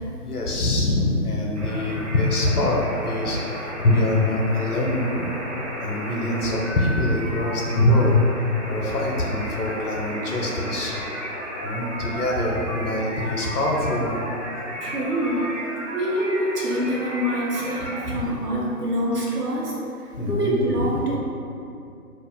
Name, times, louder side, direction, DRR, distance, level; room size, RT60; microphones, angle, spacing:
voice 1, 0.2-5.3 5.8-8.2 8.6-11.0 11.6-14.1 18.0-18.3 20.2-20.9, left 1 dB, 70° left, -2 dB, 0.7 m, -24 dB
sound 1, 1.5-18.0, equal, 50° right, 0.6 m, -33 dB
voice 2, 14.8-15.6 15.9-21.2, equal, 80° right, -4 dB, 0.8 m, -25 dB
2.4 x 2.1 x 3.5 m, 2.6 s
figure-of-eight pair, 150°, 47 cm